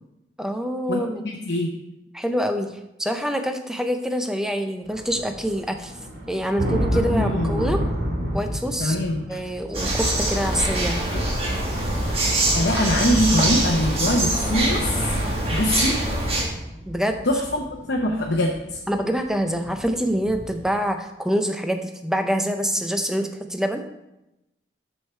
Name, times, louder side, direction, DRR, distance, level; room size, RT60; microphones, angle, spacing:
voice 1, 0.4-1.2 2.1-2.7 3.0-5.9 6.3-7.8 8.3-9.0 9.3-11.0 16.9-17.2 18.9-23.9, equal, 5° right, 6 dB, 0.5 m, -25 dB
voice 2, 0.9-1.7 6.9-7.7 8.8-9.4 12.5-15.1 15.5-15.9 17.2-18.8, left 1 dB, 75° left, 0 dB, 0.8 m, -23 dB
sound 1, 4.8-20.7, equal, 70° right, 2.1 m, -32 dB
sound 2, 9.7-16.4, right 1 dB, 35° right, 1.4 m, -23 dB
6.4 x 6.4 x 4.4 m, 0.92 s
head